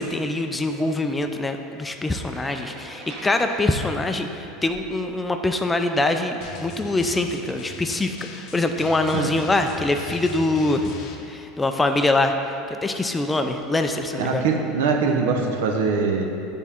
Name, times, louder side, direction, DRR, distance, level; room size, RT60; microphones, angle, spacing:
voice 1, 0.0-10.9 11.2-12.3 12.7-14.5, left 2 dB, 10° left, 6 dB, 0.3 m, -24 dB
sound 1, 1.9-5.0, right 2 dB, 60° right, 1.1 m, -43 dB
Drum, 6.4-11.2, left 5 dB, 55° left, 0.6 m, -39 dB
voice 2, 14.2-16.3, right 4 dB, 90° right, 2 dB, 0.6 m, -22 dB
7.0 x 3.6 x 4.3 m, 2.8 s
supercardioid pair, 135°, 0 cm